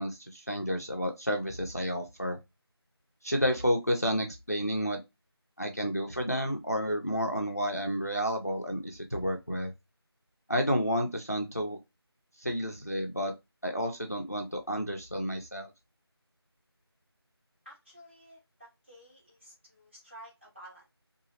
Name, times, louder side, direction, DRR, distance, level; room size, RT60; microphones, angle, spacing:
voice 1, 0.0-2.4 3.2-5.0 5.6-9.7 10.5-11.8 12.4-13.3 13.6-15.7, equal, 35° left, 0.4 m, -30 dB
voice 2, 17.6-20.9, right 1 dB, 25° right, 1.3 m, -52 dB
2.8 x 2.4 x 2.8 m
figure-of-eight pair, 175°, 14 cm